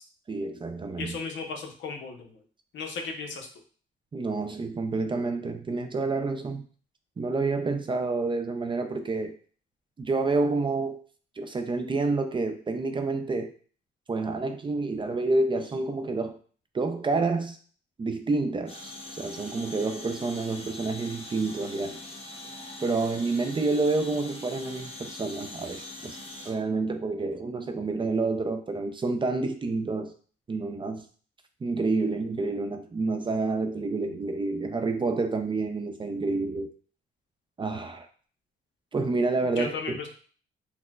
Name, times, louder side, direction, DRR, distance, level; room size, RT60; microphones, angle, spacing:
voice 1, 0.3-1.2 4.1-6.6 7.2-9.4 10.0-11.0 11.4-13.5 14.1-16.4 16.7-17.6 18.0-22.0 22.8-26.2 26.5-30.1 30.5-31.0 31.6-36.7 37.6-38.1 38.9-39.8, right 3 dB, 25° right, 6 dB, 0.4 m, -28 dB
voice 2, 1.0-2.4 2.7-3.5 39.6-40.1, left 4 dB, 65° left, 3 dB, 0.7 m, -35 dB
sound 1, 18.7-26.5, left 2 dB, 30° left, 0.8 m, -42 dB
4.2 x 2.1 x 2.3 m, 0.43 s
cardioid pair, 90°, 20 cm